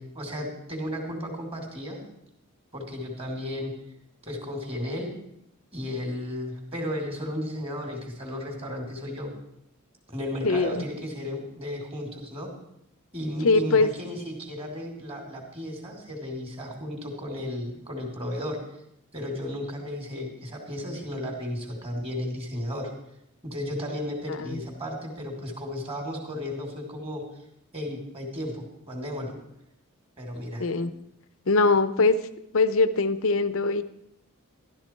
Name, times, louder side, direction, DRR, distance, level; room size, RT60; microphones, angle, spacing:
voice 1, 0.0-2.0 2.7-3.7 4.2-5.1 5.7-9.3 10.1-12.5 13.1-18.6 19.1-22.9 23.4-27.2 27.7-29.3 30.2-30.7, left 1 dB, 25° right, 2 dB, 2.7 m, -34 dB
voice 2, 10.4-10.8 13.4-13.9 24.3-24.6 30.6-30.9 31.5-32.2 32.5-33.8, left 3 dB, 70° left, 13 dB, 0.7 m, -22 dB
13.0 x 12.5 x 4.5 m, 0.78 s
head